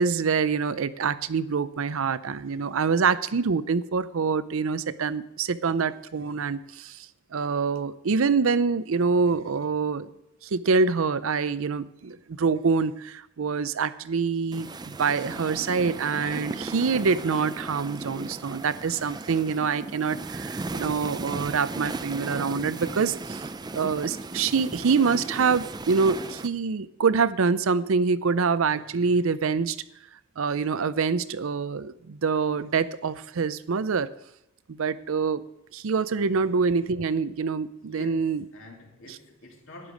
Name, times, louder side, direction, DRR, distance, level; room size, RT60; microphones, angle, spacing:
voice 1, 0.0-10.1 10.4-23.4 23.7-29.8 30.4-34.1 34.7-35.4 35.7-38.4, right 5 dB, 70° right, 0.5 m, -25 dB
sound 1, 14.5-26.5, right 3 dB, 20° right, 0.4 m, -36 dB
voice 2, 37.8-39.9, left 1 dB, 65° left, 2.9 m, -47 dB
12.0 x 10.0 x 5.1 m
head